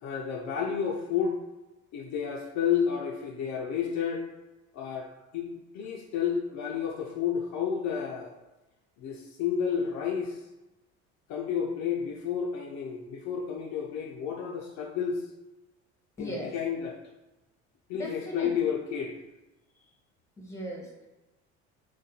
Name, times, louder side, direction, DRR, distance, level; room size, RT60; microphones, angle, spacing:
voice 1, 0.0-1.4 1.9-4.3 4.7-8.4 9.0-10.5 11.3-15.3 16.2-17.0 17.9-19.1, left 7 dB, 55° left, -1 dB, 0.4 m, -31 dB
voice 2, 16.2-16.5 17.9-18.5 20.4-21.1, equal, 10° left, -2 dB, 0.8 m, -37 dB
2.4 x 2.2 x 2.7 m, 1.0 s
supercardioid pair, 75°, 34 cm